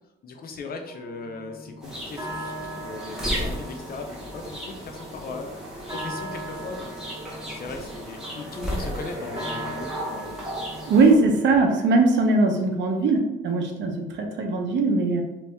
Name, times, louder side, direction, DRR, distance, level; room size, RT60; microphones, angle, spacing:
voice 1, 0.2-5.5 5.8-7.1 7.5-10.7, left 3 dB, 50° left, 4 dB, 0.6 m, -38 dB
sound 1, 0.9-12.1, right 1 dB, 20° right, 1.4 m, -40 dB
sound 2, 1.8-11.1, equal, 5° right, 1.1 m, -34 dB
voice 2, 10.9-15.2, right 3 dB, 65° right, 3 dB, 0.7 m, -20 dB
2.9 x 2.7 x 3.4 m, 0.98 s
cardioid pair, 90°, 20 cm